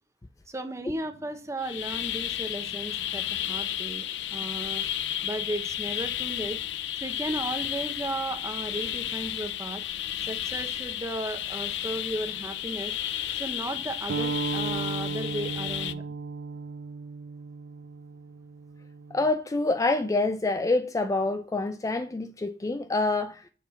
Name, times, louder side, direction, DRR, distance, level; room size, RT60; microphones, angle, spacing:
voice 1, 0.5-4.1 4.3-4.8 5.2-6.6 7.0-9.8 10.2-12.9 13.3-16.2, right 1 dB, 15° right, 0.9 m, -35 dB
sound 1, 1.6-15.9, left 11 dB, 85° left, 0.5 m, -33 dB
sound 2, 14.1-19.3, right 4 dB, 90° right, 0.4 m, -35 dB
voice 2, 19.1-23.5, left 2 dB, 20° left, 0.4 m, -26 dB
6.7 x 3.9 x 5.7 m
head